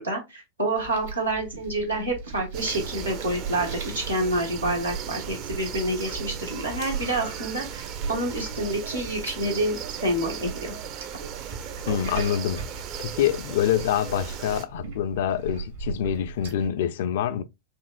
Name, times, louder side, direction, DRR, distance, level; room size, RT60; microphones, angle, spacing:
voice 1, 0.0-10.7, right 1 dB, 85° right, 1.3 m, -28 dB
sound 1, 0.7-16.7, right 5 dB, 65° right, 1.5 m, -39 dB
sound 2, 2.5-14.7, right 7 dB, 40° right, 0.5 m, -37 dB
voice 2, 11.9-12.7 13.0-17.4, left 10 dB, 55° left, 0.3 m, -26 dB
4.3 x 2.9 x 2.3 m
figure-of-eight pair, 90°, 0 cm